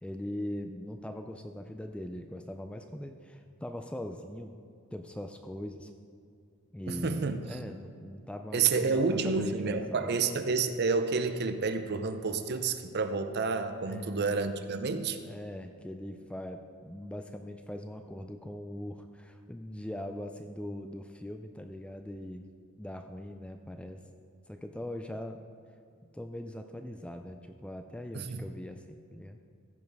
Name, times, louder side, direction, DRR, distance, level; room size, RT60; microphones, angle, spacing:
voice 1, 0.0-4.6 4.9-5.9 6.7-10.2 13.8-14.3 15.2-24.1 24.5-25.5 26.1-29.4, left 1 dB, 5° left, 6 dB, 0.3 m, -41 dB
voice 2, 6.9-7.4 8.5-15.2 28.1-28.4, right 4 dB, 45° right, 9 dB, 0.6 m, -29 dB
15.0 x 5.4 x 4.7 m, 2.3 s
head